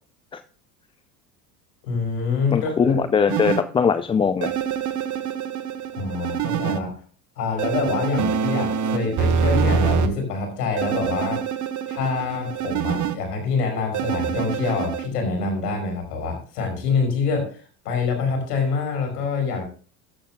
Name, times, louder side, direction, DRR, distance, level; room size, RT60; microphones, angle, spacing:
voice 1, 1.8-3.0 5.9-7.0 7.4-11.5 11.9-19.7, left 4 dB, 75° left, 4 dB, 5.5 m, -26 dB
voice 2, 2.5-4.5, left 6 dB, 15° left, 12 dB, 0.3 m, -21 dB
sound 1, 3.3-3.6 4.4-6.8 7.6-10.1 10.8-13.1 13.9-15.1, right 6 dB, 40° right, 1.4 m, -25 dB
14.5 x 11.5 x 2.3 m, 0.41 s
hypercardioid pair, 75°, 47 cm